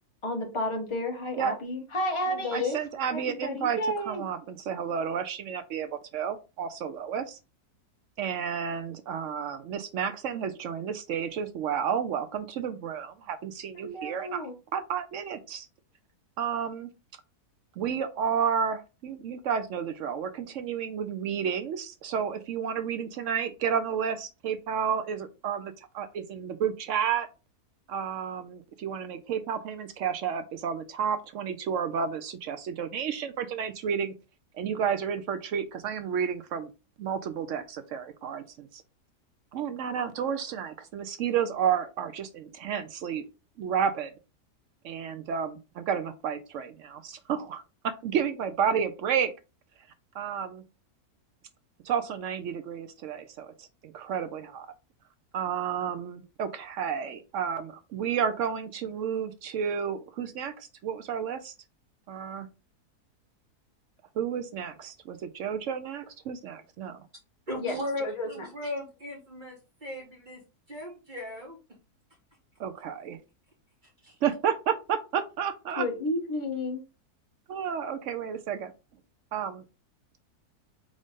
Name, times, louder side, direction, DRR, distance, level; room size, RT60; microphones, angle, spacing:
voice 1, 0.2-2.8 3.1-4.3 13.7-14.5 67.6-68.5 75.7-76.8, left 1 dB, 20° left, 1 dB, 1.1 m, -31 dB
voice 2, 2.5-3.8 4.1-7.4 8.2-14.4 14.7-15.7 16.4-16.9 17.8-27.3 27.9-34.1 34.5-36.7 37.0-38.8 39.5-43.2 43.6-44.1 44.8-49.3 50.1-50.6 51.8-54.7 55.3-61.5 62.1-62.5 64.2-67.0 72.6-73.2 74.2-75.9 77.5-78.7 79.3-79.6, right 7 dB, 70° right, 9 dB, 0.7 m, -31 dB
voice 3, 67.5-70.4 70.7-71.6 74.0-74.1, left 1 dB, 30° right, -4 dB, 2.4 m, -37 dB
3.8 x 3.7 x 3.5 m, 0.29 s
omnidirectional pair, 1.7 m